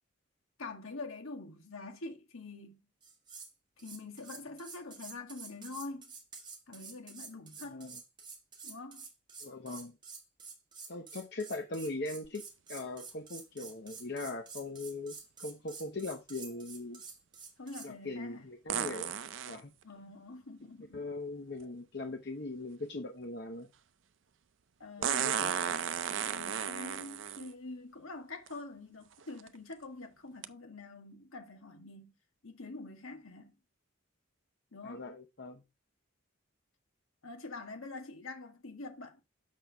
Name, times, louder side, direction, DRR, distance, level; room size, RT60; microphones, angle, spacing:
voice 1, 0.6-2.8 3.8-6.1 6.7-7.9 8.6-9.1 17.6-18.5 19.8-21.1 24.8-25.4 26.3-32.1 32.4-33.5 34.7-35.1 37.2-39.2, left 3 dB, 85° left, 1.8 m, -45 dB
sound 1, 3.0-3.5 3.8-17.9, right 5 dB, 20° right, 1.2 m, -49 dB
voice 2, 7.6-8.0 9.4-10.0 10.9-12.4 12.7-17.0 17.8-19.1 19.4-19.7 20.9-23.7 25.0-25.5 34.8-35.6, left 2 dB, 50° left, 0.9 m, -40 dB
sound 2, 12.2-12.3 18.7-19.6 21.6-21.7 25.0-27.5 28.5-28.6 29.2-29.5 30.4-30.5, right 8 dB, 65° right, 0.5 m, -34 dB
6.4 x 6.3 x 3.5 m
head